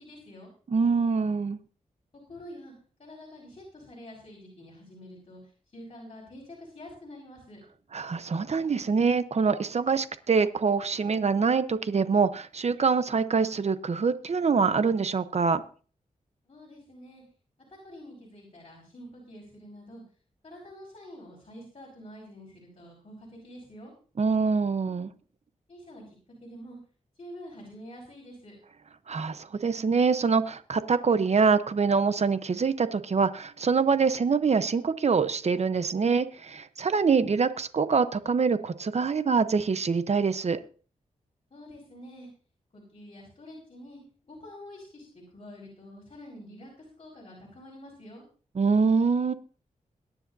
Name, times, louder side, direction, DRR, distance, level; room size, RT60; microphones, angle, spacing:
voice 1, 0.0-0.5 2.3-2.7 3.0-7.6 16.4-17.2 17.7-20.0 20.4-23.9 25.7-26.8 27.1-28.5 41.5-42.3 42.7-48.2, left 1 dB, 45° left, -4 dB, 5.1 m, -47 dB
voice 2, 0.7-1.6 7.9-15.6 24.2-25.1 29.1-40.6 48.6-49.3, right 5 dB, 55° right, 12 dB, 0.9 m, -25 dB
22.0 x 10.0 x 2.7 m, 0.39 s
wide cardioid pair, 85°, 14 cm